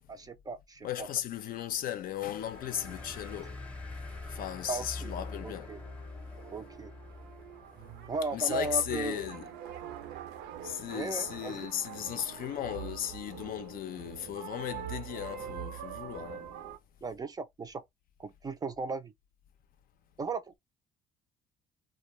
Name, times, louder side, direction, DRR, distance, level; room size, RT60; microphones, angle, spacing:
voice 1, 0.1-1.1 4.7-5.1 5.4-5.8 6.5-6.9 8.1-9.2 10.9-11.7 17.0-17.8 18.2-19.1 20.2-20.6, right 3 dB, 25° right, 0.3 m, -36 dB
voice 2, 0.8-5.8 6.3-6.4 8.3-9.7 10.6-16.6, left 10 dB, 60° left, 0.5 m, -36 dB
sound 1, 2.3-9.4, left 3 dB, 5° left, 0.7 m, -45 dB
sound 2, 5.4-16.8, right 9 dB, 80° right, 0.5 m, -44 dB
2.2 x 2.1 x 3.0 m
cardioid pair, 110°, 17 cm